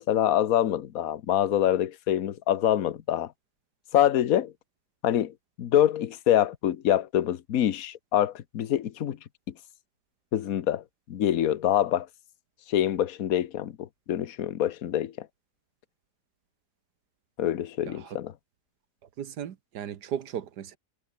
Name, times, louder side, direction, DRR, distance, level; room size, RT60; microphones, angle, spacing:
voice 1, 0.0-3.3 3.9-4.5 5.0-9.2 10.3-12.1 12.7-15.3 17.4-18.3, left 11 dB, 60° left, 1.4 m, -25 dB
voice 2, 17.8-18.2 19.2-20.8, right 9 dB, 75° right, 1.7 m, -36 dB
omnidirectional pair, 1.8 m